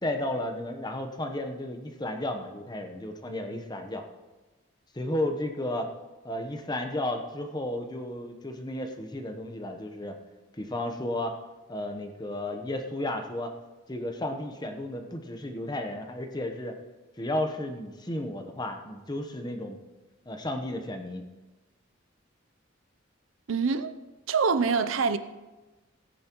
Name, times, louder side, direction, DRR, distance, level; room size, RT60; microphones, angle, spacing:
voice 1, 0.0-4.1 4.9-5.9 6.2-10.2 10.6-11.4 11.7-13.5 13.9-16.8 17.2-19.8 20.3-21.2, left 1 dB, 20° left, 0.9 m, -33 dB
voice 2, 23.5-23.9 24.3-25.2, right 5 dB, 90° right, 0.6 m, -25 dB
17.0 x 9.6 x 3.0 m
head